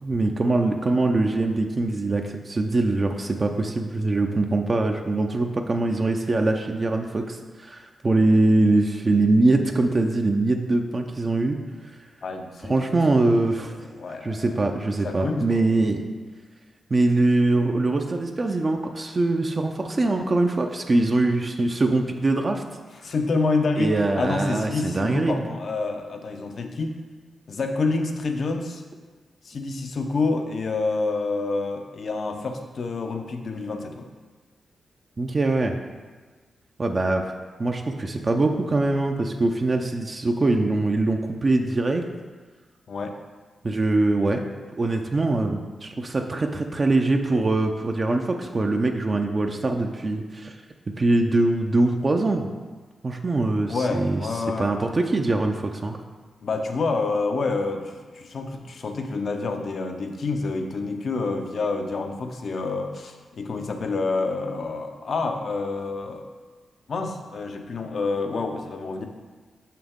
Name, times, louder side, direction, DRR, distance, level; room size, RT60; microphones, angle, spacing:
voice 1, 0.0-11.6 12.6-13.7 14.2-16.0 16.9-22.6 23.8-25.4 35.2-35.7 36.8-37.3 37.6-42.0 43.6-44.4 44.8-50.6 51.0-52.5 53.0-54.2 54.6-56.0, right 2 dB, 45° right, 3 dB, 0.5 m, -23 dB
voice 2, 12.2-12.8 13.1-14.5 15.0-15.6 23.0-27.0 27.5-28.8 29.4-34.1 42.9-43.2 53.7-54.7 56.4-66.2 66.9-69.0, left 3 dB, 65° left, 5 dB, 0.7 m, -28 dB
6.0 x 5.7 x 3.6 m, 1.4 s
supercardioid pair, 50°, 0 cm